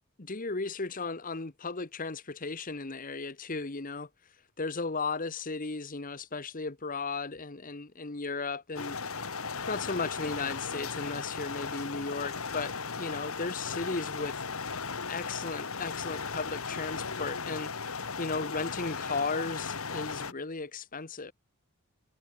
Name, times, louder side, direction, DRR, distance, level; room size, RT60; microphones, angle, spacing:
voice 1, 0.2-4.1 4.6-9.0 9.7-14.4 15.1-21.3, left 4 dB, 40° left, 1.2 m, -35 dB
sound 1, 8.8-20.3, left 5 dB, 75° left, 1.8 m, -36 dB
head